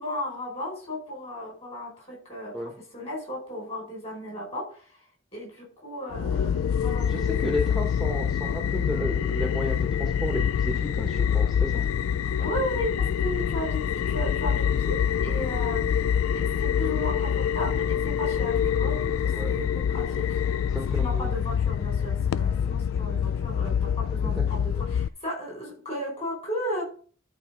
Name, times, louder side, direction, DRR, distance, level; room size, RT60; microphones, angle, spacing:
voice 1, 0.0-4.9 5.3-7.8 12.4-20.4 20.9-26.8, left 1 dB, 30° left, -1 dB, 5.2 m, -35 dB
sound 1, 6.1-25.1, left 8 dB, 90° left, 0.3 m, -26 dB
voice 2, 7.1-11.8 18.3-18.4 19.3-19.5 20.7-21.3 22.6-22.7 24.2-24.4, equal, ahead, 1 dB, 1.1 m, -33 dB
12.0 x 4.7 x 5.1 m, 0.41 s
head